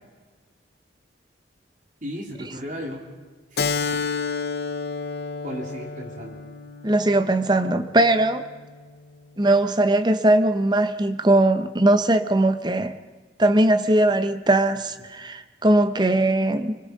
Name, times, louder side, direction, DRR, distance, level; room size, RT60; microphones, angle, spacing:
voice 1, 2.0-3.0 3.5-3.6 5.4-6.4, equal, 45° right, 0 dB, 3.5 m, -34 dB
Keyboard (musical), 3.6-8.7, left 5 dB, 60° left, 0.7 m, -30 dB
voice 2, 6.8-8.5 9.4-13.0 13.4-16.8, right 1 dB, 25° right, 10 dB, 0.9 m, -20 dB
26.0 x 21.0 x 5.3 m, 1.4 s
head